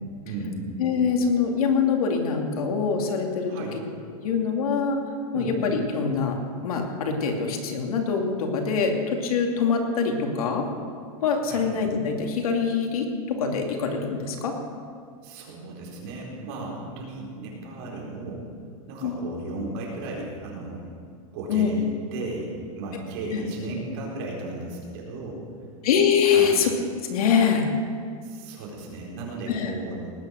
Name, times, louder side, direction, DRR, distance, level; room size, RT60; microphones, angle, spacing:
voice 1, 0.2-0.7 3.5-3.8 5.3-5.6 11.5-11.6 15.2-18.4 18.9-20.9 21.3-22.5 22.8-25.4 26.3-26.6 28.2-30.0, right 2 dB, 45° right, -3 dB, 4.4 m, -35 dB
voice 2, 0.8-3.5 4.2-5.0 5.3-6.4 6.6-10.7 11.2-14.5 19.0-19.2 21.5-21.7 23.3-23.4 25.8-26.7 27.1-27.7 29.5-29.7, left 6 dB, 90° left, 2 dB, 2.6 m, -24 dB
19.0 x 9.1 x 6.4 m, 2.1 s
supercardioid pair, 170°, 18 cm